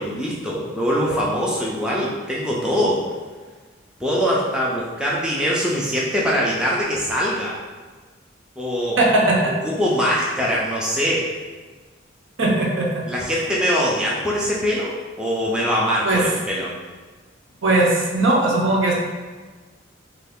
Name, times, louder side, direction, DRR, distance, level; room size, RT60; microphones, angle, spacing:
voice 1, 0.0-3.0 4.0-7.6 8.6-9.0 9.6-11.3 13.1-14.9 15.2-16.7, equal, 5° right, -5 dB, 0.4 m, -22 dB
voice 2, 9.0-9.5 12.4-12.9 16.0-16.2 17.6-18.9, right 2 dB, 70° right, -2 dB, 0.7 m, -18 dB
3.2 x 2.4 x 3.5 m, 1.4 s
head